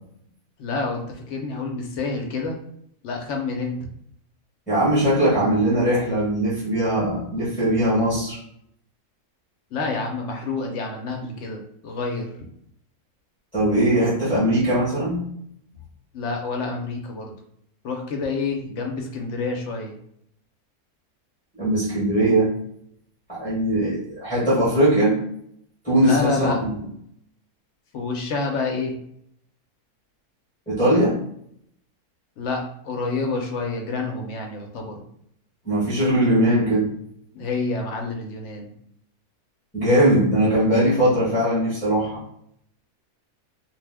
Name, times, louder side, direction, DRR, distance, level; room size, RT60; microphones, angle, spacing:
voice 1, 0.6-2.6 3.0-3.9 9.7-12.3 16.1-17.3 17.8-20.0 26.0-26.6 27.9-29.0 32.4-35.0 37.3-38.7, left 3 dB, 65° left, 2 dB, 0.8 m, -28 dB
voice 2, 4.7-8.4 13.5-15.2 21.5-22.5 23.3-25.2 25.8-26.7 30.7-31.2 35.6-36.9 39.7-42.2, right 1 dB, 5° left, -9 dB, 0.7 m, -20 dB
2.6 x 2.1 x 3.3 m, 0.71 s
omnidirectional pair, 1.6 m